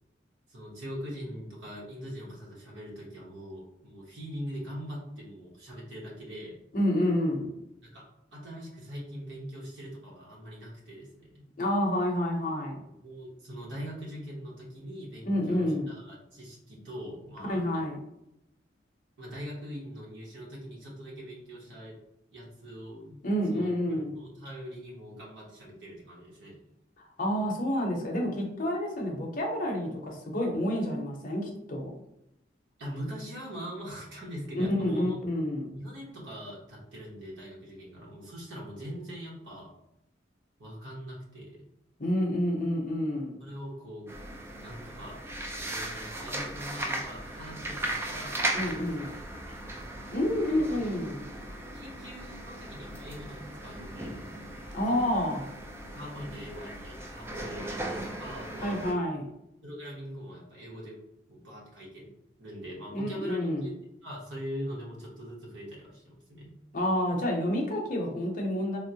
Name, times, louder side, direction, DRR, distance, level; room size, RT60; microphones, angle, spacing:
voice 1, 0.5-6.6 7.8-8.0 8.3-11.4 13.0-17.9 19.2-22.0 22.3-26.6 32.8-35.2 35.7-39.7 40.6-41.6 43.4-44.1 44.6-45.2 45.6-48.9 49.5-49.9 51.7-54.2 54.9-55.1 55.9-58.8 59.6-61.0 61.3-62.1 62.4-63.7 64.0-66.5, equal, 85° right, -4 dB, 0.9 m, -42 dB
voice 2, 6.7-7.5 11.6-12.8 15.2-15.9 17.5-18.0 23.2-24.1 27.2-31.9 34.6-35.7 42.0-43.4 48.5-49.1 50.1-51.2 54.7-55.4 58.6-59.3 62.9-63.6 66.7-68.8, left 1 dB, 45° left, 0 dB, 0.7 m, -29 dB
sound 1, 44.1-58.9, right 1 dB, 15° right, 0.3 m, -37 dB
3.6 x 2.0 x 2.7 m, 0.82 s
head